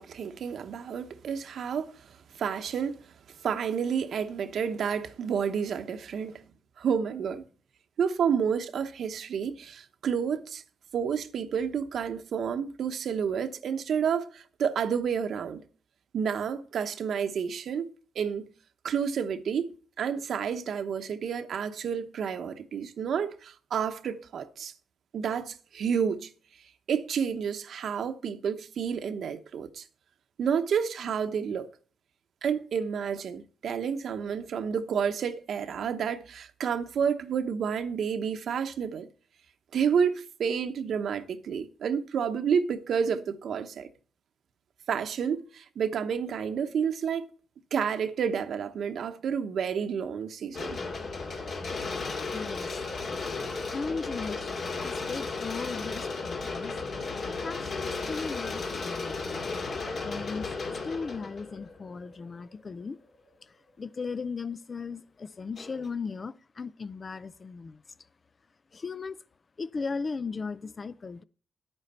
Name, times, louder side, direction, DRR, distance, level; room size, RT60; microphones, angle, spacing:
voice 1, 0.0-3.0 3.4-6.4 6.8-7.4 8.0-10.6 10.9-15.6 16.1-17.9 18.1-18.5 18.8-19.7 20.0-24.7 25.1-26.3 26.9-29.8 30.4-31.7 32.4-39.1 39.7-43.9 44.9-47.3 47.7-50.8, right 7 dB, 65° right, 1.0 m, -30 dB
sound 1, 50.5-62.6 63.3-63.4 65.6-65.9, left 3 dB, 55° left, 2.3 m, -35 dB
voice 2, 52.3-52.8 53.7-54.5 54.8-56.7 57.4-59.4 60.0-60.6 60.8-63.0 63.4-67.8 68.7-69.2 69.6-71.2, left 4 dB, 35° left, 0.4 m, -37 dB
10.5 x 8.9 x 4.3 m
cardioid pair, 110°, 0 cm